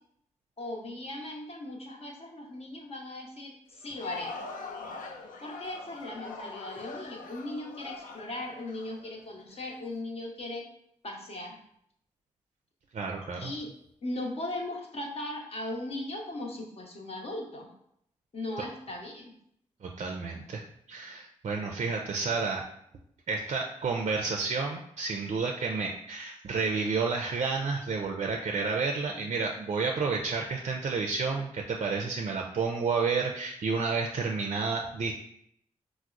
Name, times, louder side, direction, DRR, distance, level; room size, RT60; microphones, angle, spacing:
voice 1, 0.6-4.4 5.4-10.6 11.0-11.6 13.4-13.7 14.0-17.7 18.3-19.3, left 1 dB, 45° left, 0 dB, 0.9 m, -38 dB
Crowd, 3.7-9.6, left 3 dB, 75° left, 0.4 m, -42 dB
voice 2, 12.9-13.5 19.8-20.6 20.9-22.6 23.3-35.1, right 4 dB, 50° right, 2 dB, 0.4 m, -30 dB
4.5 x 2.0 x 2.4 m, 0.72 s
supercardioid pair, 40°, 14 cm